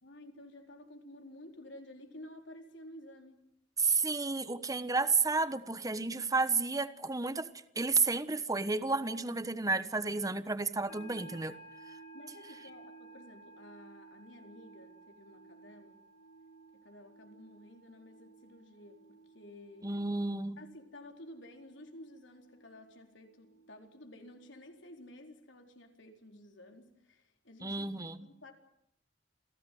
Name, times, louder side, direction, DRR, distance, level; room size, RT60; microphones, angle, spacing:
voice 1, 0.0-3.4 12.1-16.0 16.7-19.9 20.6-27.9 28.2-28.5, left 1 dB, 75° left, 4.2 m, -52 dB
voice 2, 3.8-7.5 7.7-11.5 19.8-20.6 27.6-28.3, right 4 dB, 20° right, 1.2 m, -31 dB
sound 1, 10.9-24.8, right 3 dB, 60° left, 5.0 m, -56 dB
27.5 x 17.0 x 9.4 m
head